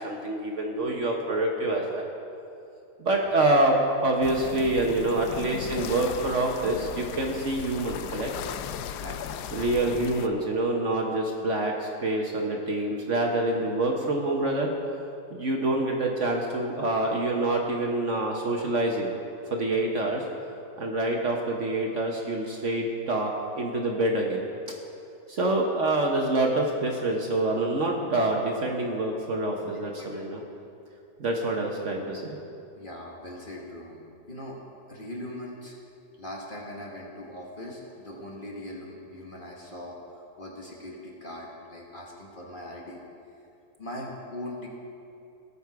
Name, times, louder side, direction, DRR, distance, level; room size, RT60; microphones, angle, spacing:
voice 1, 0.0-2.0 3.0-8.3 9.5-14.7 15.3-19.1 19.5-20.2 20.8-24.4 25.3-30.4 31.2-32.4, right 2 dB, 50° right, 1 dB, 1.2 m, -26 dB
sound 1, 4.2-10.3, left 9 dB, 80° left, 1.1 m, -37 dB
voice 2, 32.8-34.0 34.3-34.6 34.9-35.8 36.2-43.0 43.8-44.7, left 1 dB, 30° left, -2 dB, 1.5 m, -40 dB
18.0 x 7.1 x 4.7 m, 2.6 s
omnidirectional pair, 1.8 m